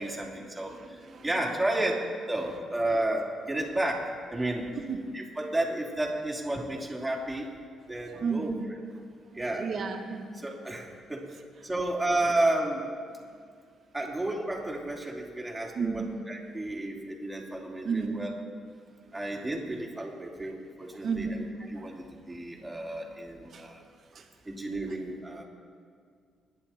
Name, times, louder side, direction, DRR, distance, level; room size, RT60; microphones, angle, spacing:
voice 1, 0.0-4.6 5.1-7.5 7.9-8.5 9.3-9.6 10.4-11.3 11.6-12.9 13.9-16.0 16.3-18.3 19.1-21.3 21.7-23.8 24.4-25.4, right 1 dB, 10° right, -2 dB, 3.1 m, -32 dB
voice 2, 0.6-1.5 4.7-5.2 8.1-8.6 9.3-10.3 11.6-11.7 13.3-13.5 15.7-16.1 17.5-18.2 19.0-19.8 20.4-24.4 24.9-25.0, right 5 dB, 55° right, 3 dB, 1.9 m, -36 dB
24.5 x 10.5 x 4.4 m, 2.1 s
cardioid pair, 90°, 0 cm